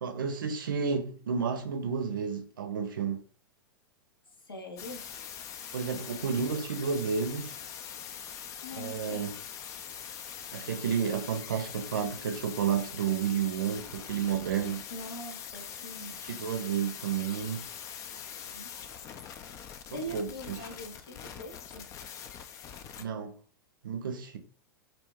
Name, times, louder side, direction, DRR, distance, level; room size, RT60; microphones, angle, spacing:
voice 1, 0.0-3.2 5.7-7.5 8.7-9.3 10.5-14.8 16.3-17.7 19.9-20.6 23.0-23.4 23.8-24.4, right 7 dB, 70° right, 0.6 m, -31 dB
voice 2, 4.4-5.0 8.6-9.3 14.9-16.2 18.4-18.7 19.9-21.9, equal, 85° left, 0.6 m, -43 dB
sound 1, 4.8-23.0, left 8 dB, 30° left, 0.3 m, -43 dB
2.5 x 2.1 x 3.5 m
figure-of-eight pair, 95°, 12 cm